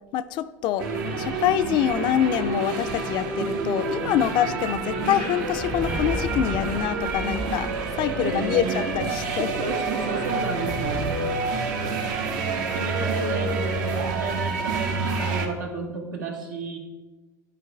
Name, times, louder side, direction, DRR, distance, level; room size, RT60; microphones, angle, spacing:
voice 1, 0.1-0.9 1.2-9.5, left 11 dB, 50° left, 13 dB, 0.4 m, -25 dB
sound 1, 0.8-15.5, right 4 dB, 75° right, 1.1 m, -28 dB
sound 2, 1.8-8.0, right 6 dB, 50° right, 0.7 m, -43 dB
sound 3, 3.1-15.7, right 1 dB, 5° right, 0.5 m, -38 dB
voice 2, 8.2-11.8 12.4-16.8, right 3 dB, 90° right, 0 dB, 1.5 m, -33 dB
11.0 x 4.5 x 3.4 m, 1.2 s
hypercardioid pair, 85°, 10 cm